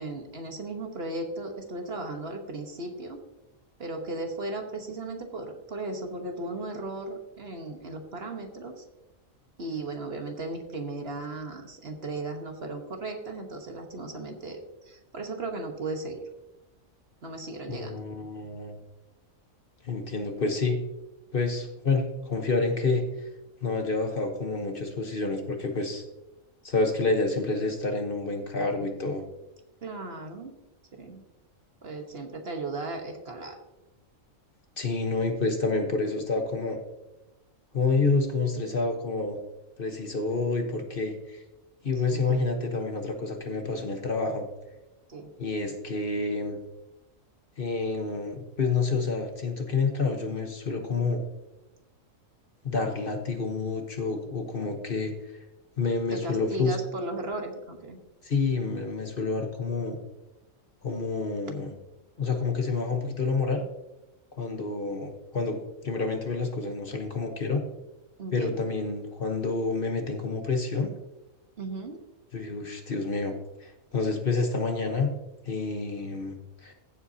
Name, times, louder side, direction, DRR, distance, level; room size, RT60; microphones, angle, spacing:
voice 1, 0.0-3.2 3.8-8.8 9.6-16.2 17.2-18.0 29.8-30.5 30.9-31.2 31.8-33.6 42.1-42.5 45.1-45.3 56.1-58.0 68.2-68.6 71.6-72.0, right 2 dB, 50° right, 4 dB, 1.4 m, -36 dB
voice 2, 17.7-18.8 19.8-20.8 21.3-23.0 23.6-26.0 26.6-29.2 34.8-36.8 37.7-39.4 39.8-41.4 41.8-44.4 45.4-46.6 47.6-51.2 52.6-55.1 55.8-56.8 58.2-60.0 60.8-61.7 62.2-63.6 64.4-65.6 65.8-67.6 68.3-70.9 72.3-73.3 73.6-75.1 75.4-76.7, left 3 dB, 45° left, 4 dB, 1.2 m, -28 dB
15.0 x 7.8 x 2.8 m, 0.98 s
omnidirectional pair, 1.4 m